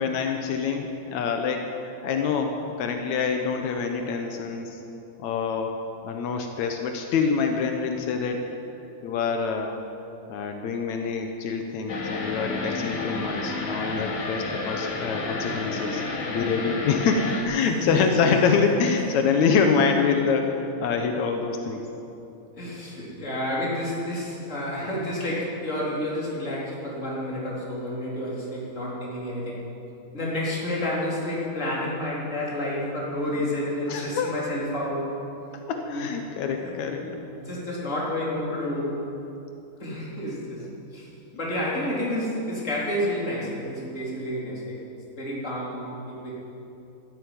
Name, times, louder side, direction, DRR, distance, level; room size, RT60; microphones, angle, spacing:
voice 1, 0.0-4.8 5.2-5.7 6.0-8.4 9.0-9.7 10.3-16.0 16.3-21.8 33.9-34.3 35.7-37.0, left 5 dB, 90° left, 4 dB, 1.6 m, -25 dB
sound 1, 11.9-17.4, left 2 dB, 50° left, 1.5 m, -31 dB
voice 2, 17.6-18.0 18.4-18.5 19.0-19.1 22.6-29.7 30.1-35.1 35.9-36.1 36.6-39.0 39.8-40.6 40.9-41.1 41.4-44.8 45.2-46.3, left 1 dB, 20° left, -5 dB, 3.4 m, -30 dB
13.0 x 11.0 x 9.4 m, 2.8 s
omnidirectional pair, 4.7 m